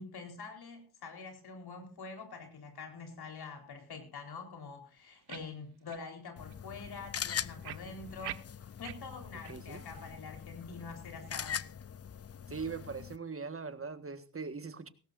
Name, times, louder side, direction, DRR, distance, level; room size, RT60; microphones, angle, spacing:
voice 1, 0.0-8.4 8.8-11.7, left 4 dB, 75° left, 4 dB, 4.3 m, -46 dB
sound 1, 5.3-5.5 5.9-6.0 6.5-6.6 7.6-9.0 9.4-9.5 10.0-10.1, right 13 dB, 85° right, 0.8 m, -43 dB
sound 2, 6.4-13.2, left 8 dB, 40° left, 0.6 m, -42 dB
voice 2, 9.5-9.8 12.5-14.9, right 5 dB, 35° right, 10 dB, 1.6 m, -41 dB
19.0 x 17.0 x 2.6 m, 0.35 s
cardioid pair, 60°, 39 cm